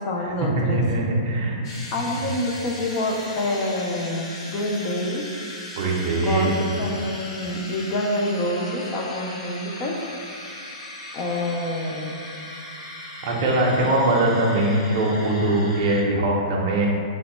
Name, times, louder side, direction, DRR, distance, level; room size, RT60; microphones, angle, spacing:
voice 1, 0.0-0.9 1.9-5.3 6.2-10.0 11.1-12.2, left 1 dB, 25° left, 0 dB, 0.3 m, -27 dB
voice 2, 0.6-1.5 5.7-6.5 13.2-16.9, right 1 dB, 40° right, -2 dB, 0.6 m, -21 dB
sound 1, 1.6-16.0, left 1 dB, 50° left, 0.8 m, -38 dB
2.9 x 2.1 x 4.1 m, 2.5 s
hypercardioid pair, 160°, 4 cm